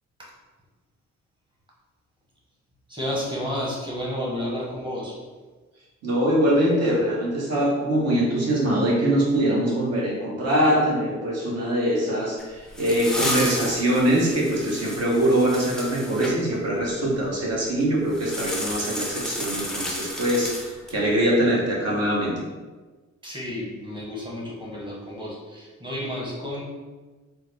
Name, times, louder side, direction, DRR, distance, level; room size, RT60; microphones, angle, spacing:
voice 1, 2.9-5.1 23.2-26.6, left 1 dB, 15° right, -4 dB, 1.1 m, -31 dB
voice 2, 6.0-22.4, right 1 dB, 55° right, -3 dB, 1.1 m, -23 dB
sound 1, 12.4-16.4 18.1-21.0, left 1 dB, ahead, 0.5 m, -32 dB
3.7 x 2.1 x 3.2 m, 1.3 s
cardioid pair, 90°, 30 cm